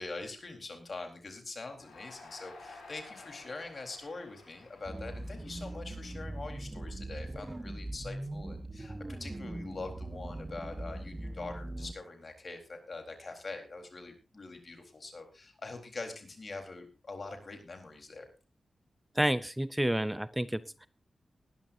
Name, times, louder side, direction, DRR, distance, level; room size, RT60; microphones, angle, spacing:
voice 1, 0.0-18.3, left 3 dB, 55° left, 4 dB, 4.1 m, -44 dB
Crowd, 1.8-7.0, left 3 dB, 85° left, 6.8 m, -53 dB
sound 1, 4.9-11.9, right 1 dB, 25° right, 1.2 m, -41 dB
voice 2, 19.1-20.9, right 1 dB, 10° right, 15 dB, 0.6 m, -30 dB
19.5 x 12.0 x 2.7 m, 0.34 s
supercardioid pair, 40°, 0 cm